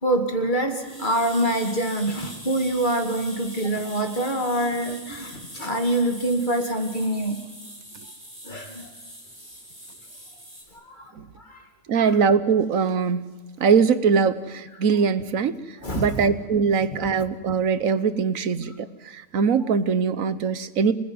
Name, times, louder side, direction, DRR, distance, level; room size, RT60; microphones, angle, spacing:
voice 1, 0.0-7.4 8.4-8.9 10.7-11.7 12.0-12.1 15.8-16.3 16.9-17.1, right 1 dB, 35° left, 4 dB, 2.5 m, -26 dB
sound 1, 0.8-10.6, equal, 10° right, 4.7 m, -42 dB
voice 2, 11.9-13.3 13.6-20.9, right 6 dB, 80° right, 14 dB, 1.4 m, -22 dB
26.0 x 19.5 x 9.6 m, 1.3 s
omnidirectional pair, 1.4 m